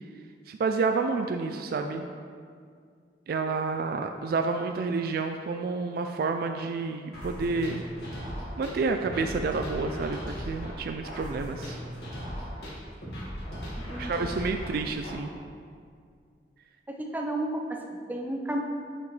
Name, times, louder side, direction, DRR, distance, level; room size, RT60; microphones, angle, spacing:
voice 1, 0.5-2.0 3.3-7.8 8.6-11.8 14.0-15.3, right 4 dB, 55° right, 5 dB, 0.3 m, -29 dB
sound 1, 7.1-15.1, equal, 65° left, 1.9 m, -38 dB
voice 2, 13.9-14.3 16.9-18.6, right 1 dB, 10° right, 1 dB, 0.6 m, -32 dB
7.2 x 6.8 x 3.3 m, 2.2 s
head